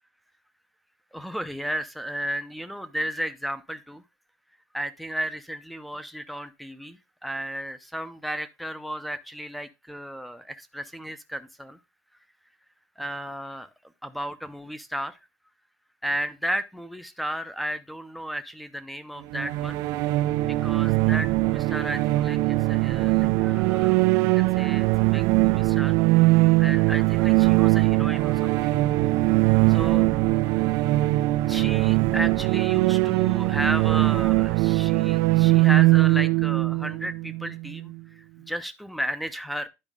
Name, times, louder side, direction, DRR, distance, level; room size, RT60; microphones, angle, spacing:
voice 1, 1.1-4.0 4.7-11.8 13.0-13.7 14.0-15.2 16.0-19.8 20.5-26.0 26.6-28.7 29.7-30.1 31.0-31.2 31.5-39.7, equal, ahead, 0.6 m, -34 dB
sound 1, 19.3-37.9, right 20 dB, 70° right, 0.4 m, -21 dB
11.0 x 5.0 x 3.6 m
cardioid pair, 170°, 6 cm